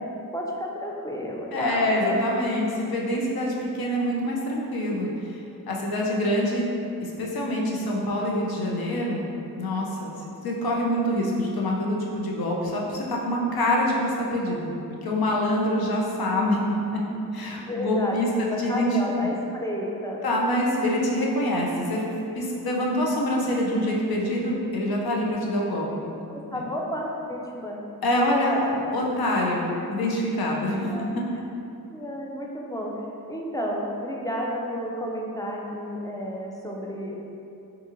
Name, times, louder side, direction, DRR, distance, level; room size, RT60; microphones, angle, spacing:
voice 1, 0.3-2.3 17.6-20.2 26.3-27.8 28.2-28.9 30.9-31.1 31.9-33.0 33.3-37.2, equal, 10° left, -2 dB, 0.4 m, -31 dB
voice 2, 1.5-5.4 5.7-6.7 7.0-10.1 10.4-14.7 15.0-17.0 17.3-19.0 20.2-22.0 22.3-26.1 26.5-26.6 28.0-28.6 28.9-31.2, left 1 dB, 75° left, -2 dB, 0.6 m, -25 dB
4.0 x 2.6 x 2.6 m, 2.8 s
wide cardioid pair, 80°, 37 cm